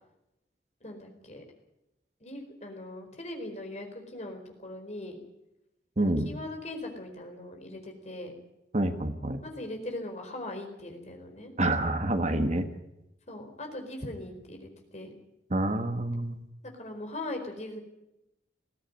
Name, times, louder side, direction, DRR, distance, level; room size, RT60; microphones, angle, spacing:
voice 1, 0.8-1.4 2.2-5.2 6.0-8.3 9.4-11.5 13.3-15.1 16.7-17.8, left 1 dB, 40° left, 4 dB, 4.5 m, -40 dB
voice 2, 6.0-6.3 8.7-9.4 11.6-12.7 15.5-16.4, right 1 dB, 40° right, 8 dB, 1.4 m, -27 dB
20.5 x 15.0 x 9.6 m, 0.89 s
head